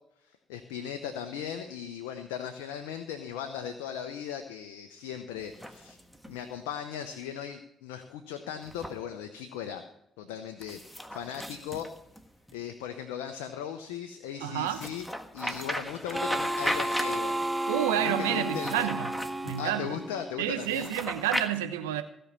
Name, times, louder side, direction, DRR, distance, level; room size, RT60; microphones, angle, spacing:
voice 1, 0.3-6.0 6.3-9.9 10.2-11.9 12.5-15.1 15.3-17.4 18.0-18.9 19.6-20.9, left 8 dB, 85° left, 0.8 m, -38 dB
sound 1, 5.4-6.4 8.6-9.0 10.6-12.5 14.7-17.5 18.4-19.6 20.6-21.5, equal, ahead, 1.5 m, -36 dB
voice 2, 14.4-14.8 17.7-19.1 19.4-19.9 20.4-22.0, right 12 dB, 90° right, 0.8 m, -29 dB
Harmonica, 16.1-20.6, right 1 dB, 20° right, 0.7 m, -32 dB
16.5 x 5.6 x 7.4 m
hypercardioid pair, 50°, 0 cm